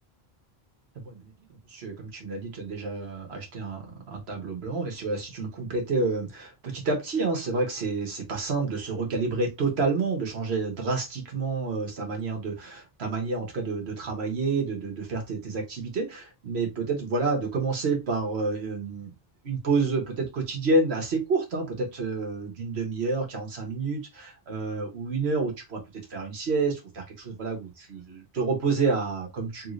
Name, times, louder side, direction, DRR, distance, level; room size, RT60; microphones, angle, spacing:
voice 1, 1.0-19.1 19.4-29.7, right 3 dB, 85° right, 2 dB, 1.4 m, -29 dB
3.3 x 3.1 x 2.5 m, 0.22 s
omnidirectional pair, 1.1 m